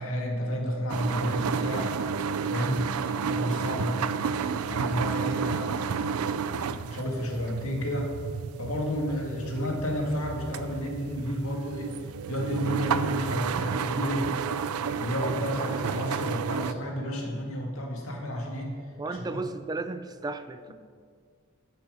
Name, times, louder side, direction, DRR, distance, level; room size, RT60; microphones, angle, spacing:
voice 1, 0.0-1.9 2.5-2.9 3.3-4.1 4.7-5.9 6.9-8.1 8.6-11.9 12.3-14.3 15.0-18.8 19.1-19.4 20.7-20.8, equal, 70° left, 0 dB, 2.2 m, -31 dB
sound 1, 0.9-16.7, right 6 dB, 85° right, 0.4 m, -31 dB
voice 2, 19.0-20.7, right 3 dB, 20° right, 10 dB, 0.3 m, -34 dB
11.5 x 5.8 x 6.3 m, 2.1 s
head